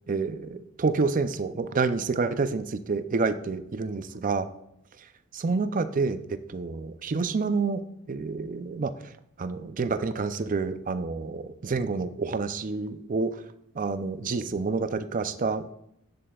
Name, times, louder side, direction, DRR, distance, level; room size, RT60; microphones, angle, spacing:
voice 1, 0.1-4.5 5.3-7.8 8.1-8.9 9.4-13.3 13.8-15.7, right 4 dB, 35° right, 11 dB, 0.4 m, -28 dB
10.0 x 7.6 x 2.3 m, 0.75 s
head